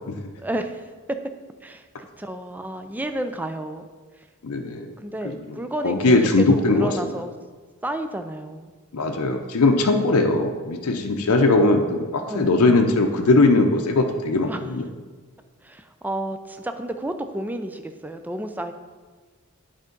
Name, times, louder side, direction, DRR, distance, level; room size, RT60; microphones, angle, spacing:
voice 1, 0.4-1.2 1.6-3.9 5.0-6.5 6.7-7.3 7.8-8.7 12.3-12.6 14.5-14.7 15.6-18.7, right 1 dB, 10° right, 7 dB, 0.4 m, -31 dB
voice 2, 4.4-4.9 5.2-5.4 5.8-7.1 8.9-14.8, left 2 dB, 75° left, 3 dB, 0.6 m, -20 dB
9.2 x 3.5 x 5.2 m, 1.4 s
head